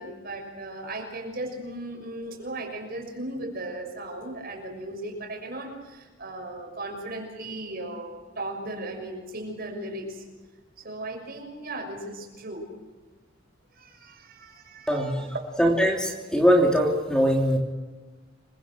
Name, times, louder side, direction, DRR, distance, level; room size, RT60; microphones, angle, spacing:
voice 1, 0.0-10.2 10.8-12.7 13.7-15.2, right 1 dB, 50° right, 3 dB, 6.5 m, -37 dB
voice 2, 14.9-15.3 15.6-17.6, equal, 5° left, 0 dB, 3.1 m, -21 dB
27.5 x 24.5 x 6.3 m, 1.2 s
head